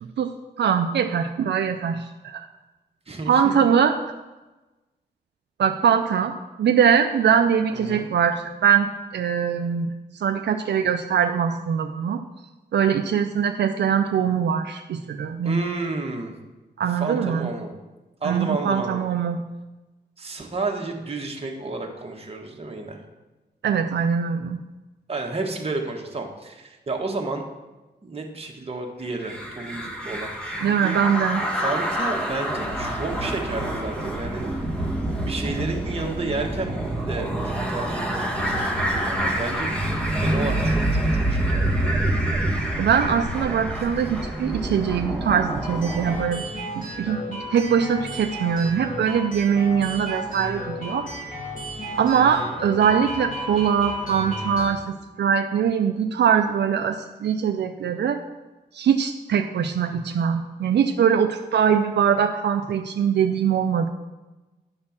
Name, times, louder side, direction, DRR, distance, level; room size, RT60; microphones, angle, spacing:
voice 1, 0.0-2.5 3.3-4.0 5.6-12.2 12.7-15.6 16.8-17.5 18.2-19.4 23.6-24.6 30.6-31.4 42.8-46.4 46.7-51.1 52.0-58.2 58.7-63.9, right 7 dB, 80° right, 6 dB, 0.5 m, -22 dB
voice 2, 3.1-3.5 7.7-8.1 15.4-16.3 17.0-17.7 18.2-19.0 20.2-23.0 25.1-27.4 28.0-30.9 31.5-34.4 35.2-39.7 40.2-42.0 52.2-52.5, right 3 dB, 35° right, 1 dB, 1.4 m, -31 dB
sound 1, 29.2-46.2, right 1 dB, 5° left, 1.4 m, -26 dB
sound 2, 45.6-54.7, equal, 50° left, 3.3 m, -33 dB
10.5 x 4.4 x 7.1 m, 1.1 s
wide cardioid pair, 120°, 18 cm